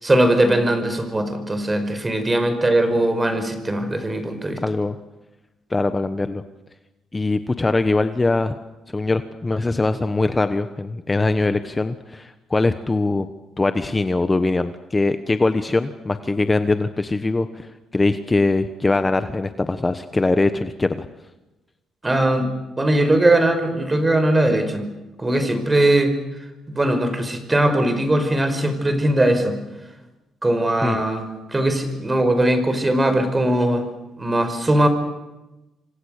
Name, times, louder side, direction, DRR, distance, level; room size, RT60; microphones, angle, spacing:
voice 1, 0.0-4.6 22.0-22.5 22.8-24.9 25.2-26.1 26.7-29.6 30.4-33.9 34.2-34.9, right 1 dB, 20° right, 9 dB, 5.4 m, -20 dB
voice 2, 4.6-4.9 5.7-6.4 7.1-8.6 8.9-13.3 13.6-21.1 30.8-31.0, left 2 dB, 20° left, 10 dB, 1.2 m, -22 dB
28.5 x 25.0 x 6.7 m, 1.0 s
cardioid pair, 90°, 0 cm